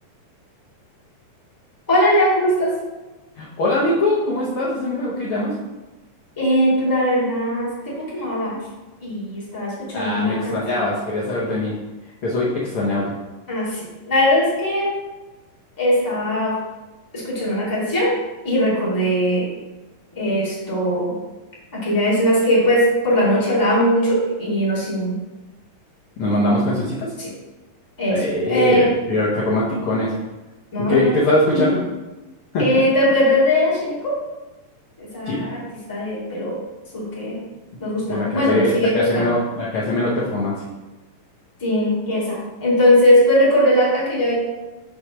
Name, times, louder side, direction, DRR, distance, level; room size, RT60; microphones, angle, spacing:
voice 1, 1.9-2.7 6.4-8.6 9.0-10.8 13.5-14.9 15.8-16.6 17.1-18.1 18.4-19.5 20.1-21.1 21.7-25.1 27.2-27.3 28.0-28.9 30.7-31.1 31.5-31.7 32.6-34.1 35.0-35.6 35.9-36.6 36.9-37.4 37.8-39.3 41.6-44.3, equal, 10° left, -7 dB, 1.6 m, -19 dB
voice 2, 3.4-5.5 9.9-11.8 12.2-13.1 26.2-27.1 28.1-30.1 30.8-31.8 32.5-32.6 35.2-35.5 38.1-40.6, left 1 dB, 65° left, -6 dB, 1.3 m, -22 dB
6.7 x 4.3 x 6.1 m, 1.1 s
omnidirectional pair, 4.0 m